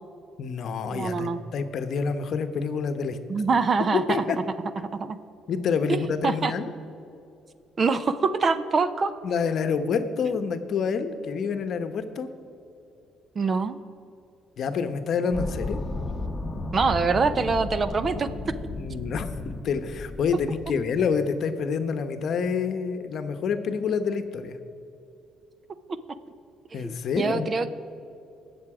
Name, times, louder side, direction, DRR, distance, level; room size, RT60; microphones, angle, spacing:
voice 1, 0.4-3.2 3.9-4.4 5.5-6.7 9.2-12.3 14.6-15.8 18.7-24.6 26.7-27.5, left 6 dB, 60° left, 9 dB, 0.9 m, -27 dB
voice 2, 0.9-1.4 3.3-4.0 4.9-5.2 5.9-6.0 6.2-6.5 7.8-9.1 13.4-13.8 16.7-18.3 26.8-27.7, right 4 dB, 35° right, 13 dB, 0.6 m, -24 dB
sound 1, 15.3-21.1, left 2 dB, 15° left, 1.4 m, -34 dB
19.0 x 7.1 x 4.9 m, 2.7 s
cardioid pair, 110°, 0 cm